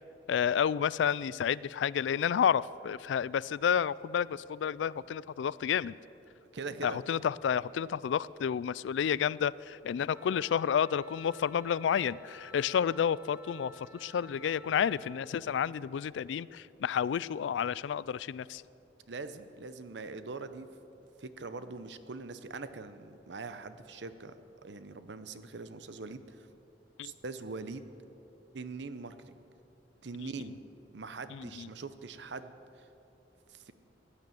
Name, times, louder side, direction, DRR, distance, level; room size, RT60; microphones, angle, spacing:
voice 1, 0.3-5.9 6.8-18.6 27.0-27.1 31.3-31.7, left 8 dB, 80° left, 20 dB, 0.3 m, -30 dB
voice 2, 6.5-7.0 19.1-20.7 21.2-24.3 24.6-26.5 27.0-27.9 28.5-29.4 30.0-30.6 30.9-32.9 33.5-33.7, right 3 dB, 70° right, 11 dB, 0.8 m, -42 dB
Wind instrument woodwind instrument, 10.1-15.3, equal, 10° right, 1.0 m, -53 dB
16.0 x 9.8 x 7.7 m, 2.8 s
head